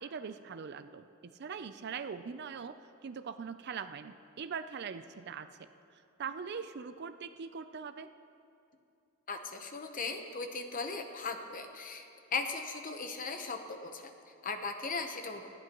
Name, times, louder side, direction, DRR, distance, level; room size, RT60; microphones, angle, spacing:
voice 1, 0.0-2.8 3.0-5.7 6.2-8.1, right 6 dB, 55° right, 11 dB, 0.5 m, -42 dB
voice 2, 9.3-14.1 14.4-15.5, left 4 dB, 40° left, 6 dB, 0.9 m, -38 dB
19.5 x 14.5 x 3.0 m, 2.6 s
head